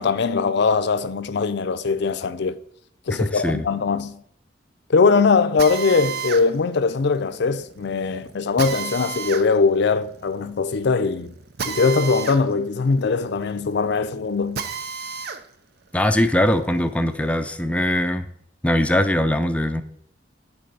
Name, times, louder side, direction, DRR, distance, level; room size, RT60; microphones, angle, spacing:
voice 1, 0.0-2.6 3.1-4.2 4.9-11.3 11.7-14.7, left 4 dB, 65° left, 0.5 m, -21 dB
voice 2, 3.1-3.7 15.9-18.3 18.6-19.8, left 1 dB, 5° left, 0.5 m, -21 dB
Drill, 5.6-15.4 15.9-17.5, right 6 dB, 60° right, 0.7 m, -33 dB
10.0 x 4.1 x 5.4 m
head